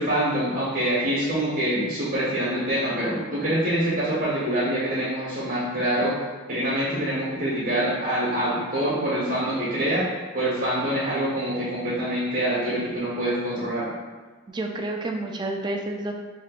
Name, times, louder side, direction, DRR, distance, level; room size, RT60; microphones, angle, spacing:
voice 1, 0.0-6.1 6.5-10.0 10.3-13.9, right 1 dB, 45° right, -9 dB, 1.4 m, -25 dB
voice 2, 14.5-16.1, right 2 dB, 20° right, 2 dB, 0.3 m, -29 dB
5.2 x 2.9 x 2.5 m, 1.4 s
head